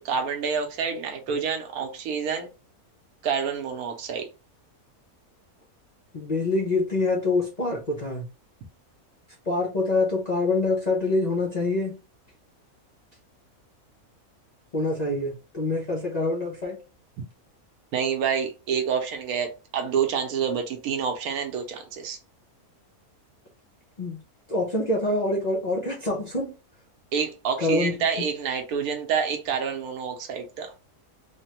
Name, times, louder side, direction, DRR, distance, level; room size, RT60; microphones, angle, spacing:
voice 1, 0.0-2.5 3.2-4.3 17.9-22.2 27.1-30.7, right 6 dB, 80° right, 1.1 m, -28 dB
voice 2, 6.1-8.3 9.5-11.9 14.7-16.8 24.0-24.2 24.5-26.5 27.6-27.9, left 2 dB, 45° left, 0.6 m, -25 dB
3.2 x 2.1 x 2.8 m
omnidirectional pair, 1.6 m